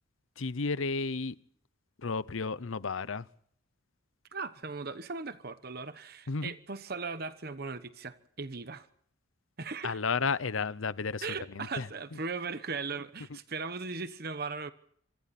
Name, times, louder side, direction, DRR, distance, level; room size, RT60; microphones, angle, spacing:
voice 1, 0.4-1.4 2.0-3.3 6.3-6.5 9.8-11.9, left 4 dB, 80° left, 0.8 m, -32 dB
voice 2, 4.3-8.9 9.6-10.0 11.2-14.7, right 4 dB, 50° right, 1.1 m, -38 dB
27.5 x 26.5 x 4.3 m
head